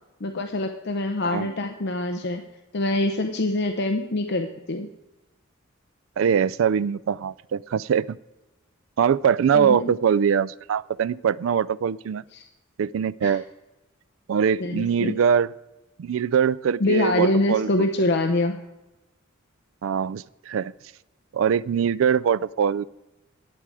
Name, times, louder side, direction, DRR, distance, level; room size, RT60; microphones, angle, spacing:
voice 1, 0.2-2.4 2.7-4.9 9.5-9.9 12.3-12.4 13.2-13.4 14.6-15.2 16.8-18.6, left 2 dB, 55° left, 6 dB, 0.7 m, -25 dB
voice 2, 6.2-8.1 9.0-12.2 12.8-13.4 14.3-15.5 16.0-17.9 19.8-20.7 21.3-22.8, right 7 dB, 75° right, 19 dB, 0.3 m, -22 dB
12.0 x 8.9 x 4.8 m, 1.0 s
head